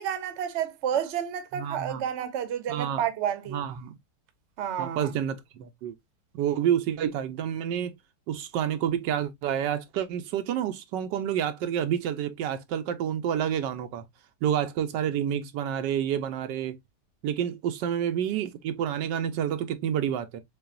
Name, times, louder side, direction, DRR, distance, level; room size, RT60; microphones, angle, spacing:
voice 1, 0.0-3.6 4.6-5.1, right 9 dB, 50° right, 0.9 m, -30 dB
voice 2, 1.5-2.0 2.7-3.0 3.5-4.0 4.8-5.9 6.3-7.9 8.3-14.0 14.4-16.8 17.2-20.4, right 9 dB, 85° right, 1.3 m, -29 dB
6.8 x 2.4 x 2.3 m
omnidirectional pair, 1.9 m